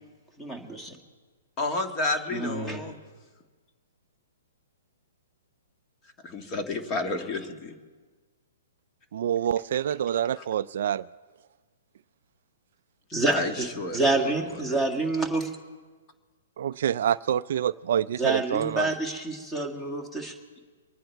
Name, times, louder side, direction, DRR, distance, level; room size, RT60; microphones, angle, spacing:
voice 1, 0.4-0.9 2.3-2.8 13.1-13.7 13.9-15.5 18.2-20.6, right 2 dB, 5° left, 1.8 m, -28 dB
voice 2, 1.6-3.0 6.2-7.7 10.4-10.5 13.3-14.3 14.7-14.8, left 2 dB, 25° left, 1.7 m, -31 dB
voice 3, 9.1-11.1 16.6-18.9, right 10 dB, 60° right, 0.3 m, -27 dB
25.0 x 9.7 x 4.6 m
hypercardioid pair, 155°, 0 cm